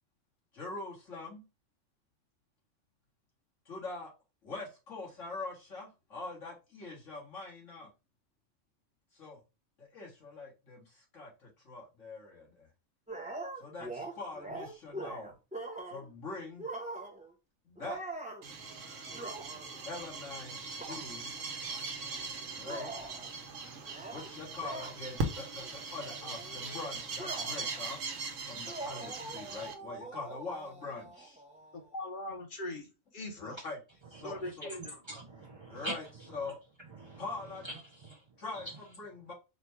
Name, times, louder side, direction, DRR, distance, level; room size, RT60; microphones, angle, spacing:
voice 1, 0.5-1.4 3.7-4.1 4.4-7.9 9.1-9.4 9.8-12.7 13.6-15.3 15.9-16.7 17.6-18.0 19.8-21.6 22.5-22.9 24.1-28.1 28.4-31.4 33.4-33.8 34.1-34.6 35.7-36.0 36.3-36.6 37.2-37.7 38.4-39.3, left 3 dB, 75° left, 2.1 m, -43 dB
sound 1, 13.1-16.1 16.6-17.3 17.8-18.5 19.1-19.8 20.8-21.0 21.7-21.8 22.6-23.3 23.8-24.3 24.6-24.9 25.5-25.7 26.0-27.8 28.6-32.0, right 2 dB, 5° right, 0.8 m, -43 dB
sound 2, 18.4-29.7, right 3 dB, 75° right, 1.2 m, -40 dB
voice 2, 31.7-33.6 34.2-35.0, left 1 dB, 45° left, 1.0 m, -41 dB
voice 3, 34.1-36.5 36.8-38.8, right 1 dB, 35° right, 0.5 m, -45 dB
4.3 x 2.3 x 4.4 m
omnidirectional pair, 1.3 m